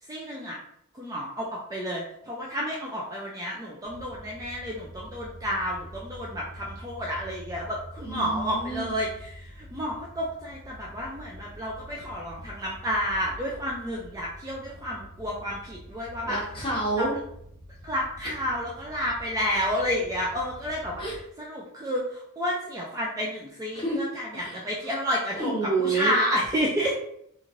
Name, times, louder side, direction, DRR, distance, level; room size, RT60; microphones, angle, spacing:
voice 1, 0.1-0.6 0.9-16.4 17.0-17.1 17.8-21.0 21.4-26.9, equal, 15° right, -3 dB, 0.3 m, -30 dB
sound 1, 3.8-21.2, equal, 80° right, 1.4 m, -46 dB
voice 2, 8.0-9.0 16.3-17.1 18.2-18.3 21.0-21.2 23.7-24.0 24.3-25.0 25.3-26.2 26.8-27.0, right 3 dB, 25° left, -5 dB, 0.9 m, -29 dB
3.0 x 2.5 x 2.5 m, 0.73 s
head